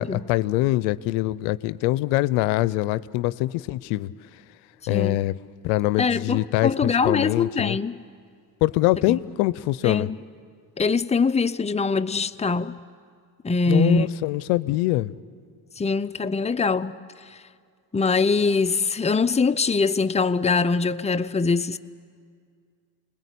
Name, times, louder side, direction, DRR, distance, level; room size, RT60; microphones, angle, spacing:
voice 1, 0.0-4.1 4.9-5.3 5.6-7.8 8.6-10.1 13.7-15.1, left 17 dB, 85° left, 0.6 m, -23 dB
voice 2, 4.9-5.2 6.0-8.0 9.1-9.2 9.8-10.2 10.8-12.7 13.4-14.1 15.8-16.9 17.3-17.4 17.9-21.8, left 4 dB, 15° left, 0.7 m, -23 dB
27.0 x 20.5 x 8.4 m
supercardioid pair, 65°, 48 cm